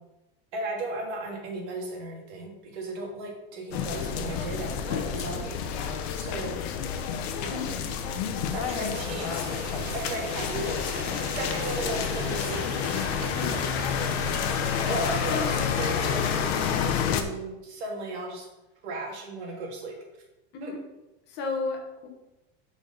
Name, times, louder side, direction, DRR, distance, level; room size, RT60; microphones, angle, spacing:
voice 1, 0.5-6.6 7.4-7.6 8.5-9.5 9.9-12.6 14.8-18.5 18.8-20.0 20.6-20.7, right 2 dB, 75° right, 1 dB, 1.9 m, -36 dB
sound 1, 3.7-17.2, left 8 dB, 65° left, 0.8 m, -29 dB
sound 2, 8.5-16.9, right 4 dB, 30° right, 0.6 m, -39 dB
voice 2, 13.3-13.6 15.3-15.6 20.5-20.8 21.3-22.1, left 4 dB, 30° left, 2 dB, 1.0 m, -33 dB
4.8 x 4.5 x 5.2 m, 0.97 s
supercardioid pair, 160°, 34 cm